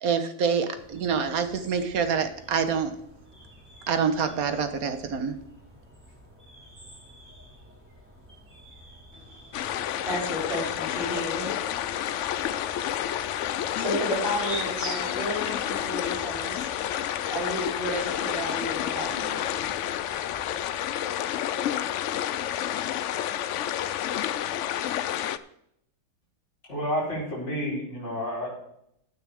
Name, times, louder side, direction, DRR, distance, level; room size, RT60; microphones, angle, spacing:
voice 1, 0.0-3.0 3.9-5.4, right 6 dB, 60° right, 9 dB, 1.5 m, -26 dB
sound 1, 0.7-20.6, right 1 dB, 5° right, 5.1 m, -47 dB
voice 2, 9.1-11.5 11.8-16.7 17.3-19.7, equal, 35° right, -5 dB, 4.8 m, -34 dB
sound 2, 9.5-25.4, left 11 dB, 80° left, 0.6 m, -30 dB
voice 3, 26.7-28.6, equal, 40° left, -5 dB, 4.5 m, -30 dB
15.0 x 9.5 x 3.5 m, 0.76 s
omnidirectional pair, 1.8 m